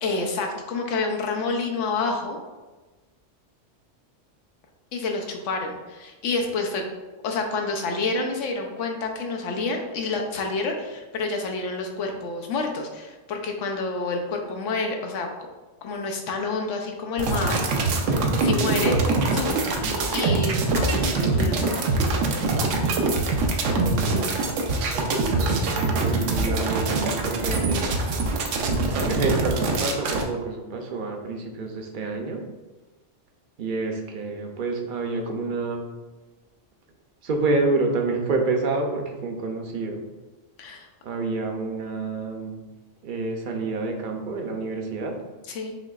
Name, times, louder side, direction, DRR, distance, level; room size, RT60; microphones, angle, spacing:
voice 1, 0.0-2.4 4.9-6.8 7.2-15.3 15.8-17.6 18.4-19.0 19.3-19.7 20.1-22.1 40.6-40.9 45.5-45.7, left 3 dB, 85° left, 2 dB, 1.0 m, -28 dB
sound 1, 17.2-30.2, right 3 dB, 85° right, 1.0 m, -24 dB
voice 2, 18.6-19.0 23.7-24.3 25.5-28.1 29.0-32.4 33.6-35.8 37.2-40.0 41.0-42.6 43.0-45.2, right 3 dB, 55° right, 2 dB, 0.6 m, -28 dB
5.4 x 2.9 x 2.4 m, 1.2 s
omnidirectional pair, 1.2 m